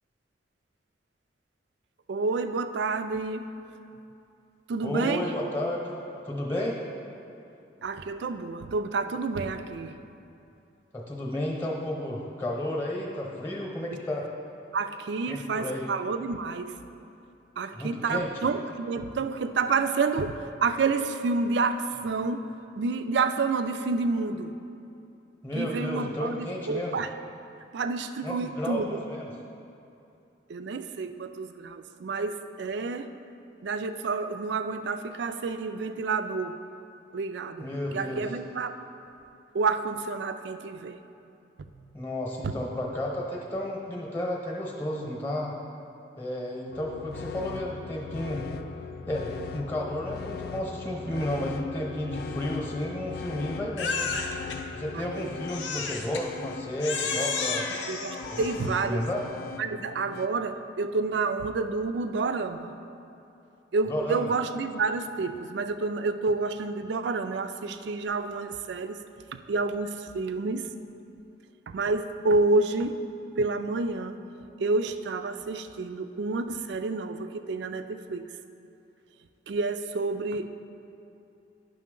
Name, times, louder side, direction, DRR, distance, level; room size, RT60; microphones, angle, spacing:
voice 1, 2.1-3.5 4.7-5.3 7.8-9.9 14.7-16.7 17.6-22.4 22.8-24.5 25.5-27.1 27.7-29.0 30.5-33.1 33.6-36.6 37.1-38.7 39.5-41.0 42.4-42.5 54.9-55.3 57.9-59.1 59.6-62.7 63.7-69.0 69.3-70.7 71.7-73.0 73.4-74.2 74.6-78.2 79.5-80.5, right 3 dB, 70° right, 9 dB, 0.4 m, -29 dB
voice 2, 4.8-6.8 10.9-14.3 15.3-15.8 17.7-18.3 25.4-27.0 28.2-29.3 37.6-38.2 41.9-45.5 46.2-48.4 49.1-54.1 54.7-57.7 58.3-59.2 63.9-64.3, left 1 dB, 10° left, -1 dB, 0.9 m, -32 dB
sound 1, 46.7-60.3, left 5 dB, 55° left, 0.3 m, -40 dB
Crying sobbing, 53.8-54.6 55.5-56.3 56.8-58.9, left 5 dB, 80° left, 0.7 m, -32 dB
10.5 x 5.8 x 3.7 m, 2.7 s
head